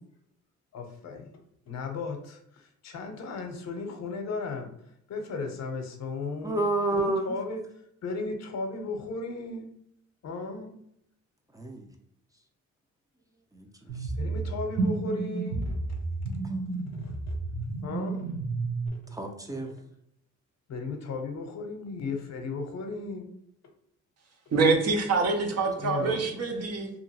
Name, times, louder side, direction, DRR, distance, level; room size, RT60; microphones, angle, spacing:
voice 1, 0.7-1.3 1.7-4.7 5.1-6.7 6.9-7.6 8.0-9.7 10.2-10.7 14.2-16.0 16.9-17.3 17.8-18.3 19.5-19.7 20.7-23.3 25.8-26.3, left 3 dB, 60° left, 4 dB, 0.7 m, -35 dB
voice 2, 6.4-7.4 11.5-11.8 13.5-14.1 16.4-16.5 19.1-19.7 26.0-26.2, right 2 dB, 10° right, 3 dB, 0.5 m, -30 dB
sound 1, 13.9-18.9, right 3 dB, 85° right, 0.8 m, -31 dB
voice 3, 24.5-26.9, right 4 dB, 55° right, 4 dB, 0.7 m, -25 dB
2.8 x 2.5 x 2.8 m, 0.73 s
cardioid pair, 90°, 30 cm